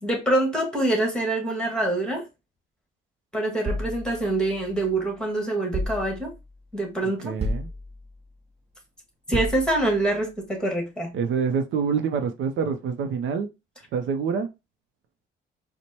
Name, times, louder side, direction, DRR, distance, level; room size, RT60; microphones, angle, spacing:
voice 1, 0.0-2.2 3.3-6.3 6.7-7.3 9.3-11.2, right 2 dB, 5° left, 1.5 m, -25 dB
sound 1, 3.6-5.0 5.7-6.6 7.4-8.3 9.3-10.1, equal, 30° right, 0.8 m, -32 dB
voice 2, 7.2-7.7 11.1-13.5 13.9-14.5, right 6 dB, 75° right, 0.5 m, -26 dB
4.4 x 2.1 x 2.8 m
cardioid pair, 90°, 20 cm